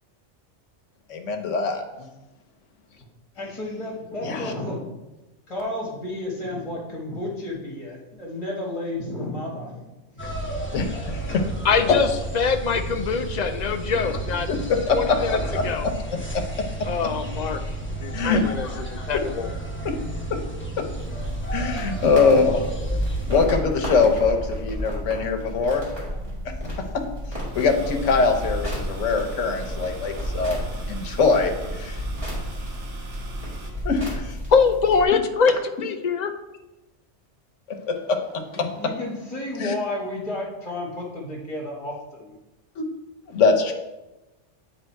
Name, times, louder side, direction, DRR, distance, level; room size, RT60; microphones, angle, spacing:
voice 1, 1.1-2.1 4.2-4.5 10.7-11.4 14.5-15.9 18.1-18.5 19.8-19.9 20.8-20.9 21.5-22.6 23.3-26.2 27.5-30.6 30.9-32.0 33.8-34.2 37.7-38.2 38.6-38.7 39.6-39.7 42.8-42.9 43.3-43.7, left 4 dB, 80° left, 5 dB, 1.2 m, -23 dB
voice 2, 3.3-4.9 5.5-9.8 10.1-10.5 38.5-42.3, left 1 dB, 30° left, -3 dB, 1.4 m, -32 dB
sound 1, 10.2-23.4, right 2 dB, 10° left, 0.8 m, -32 dB
voice 3, 11.6-14.5 14.9-15.9 16.8-17.6 18.0-19.5 34.5-36.3, left 5 dB, 55° left, 7 dB, 0.5 m, -23 dB
sound 2, 21.0-35.0, equal, 30° right, 2.6 m, -32 dB
sound 3, 27.5-33.7, right 2 dB, 75° right, 1.5 m, -37 dB
9.0 x 3.4 x 4.5 m, 1.0 s
omnidirectional pair, 1.2 m